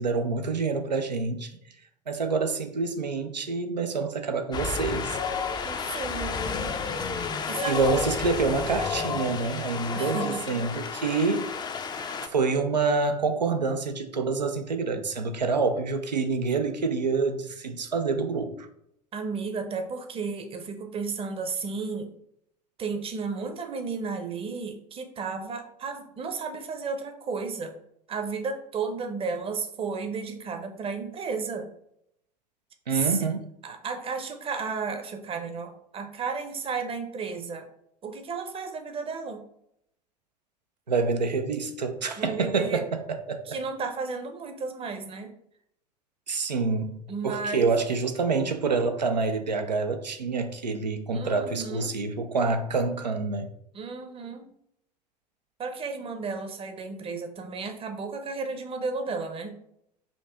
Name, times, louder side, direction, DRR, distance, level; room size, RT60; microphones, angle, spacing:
voice 1, 0.0-1.5 2.1-5.2 7.7-11.5 12.2-18.7 32.9-33.4 40.9-43.4 46.3-53.5, right 4 dB, 85° right, 0.5 m, -27 dB
Wind, 4.5-12.3, left 5 dB, 20° left, 0.4 m, -31 dB
voice 2, 5.6-8.1 9.9-10.6 12.0-12.3 19.1-22.1 22.8-27.8 28.1-31.7 32.9-33.3 33.6-37.7 38.0-39.4 42.2-42.8 43.5-45.3 47.1-47.7 51.1-51.9 53.7-54.5 55.6-59.5, right 4 dB, 25° right, 0.7 m, -33 dB
5.3 x 2.8 x 3.4 m
figure-of-eight pair, 75°, 21 cm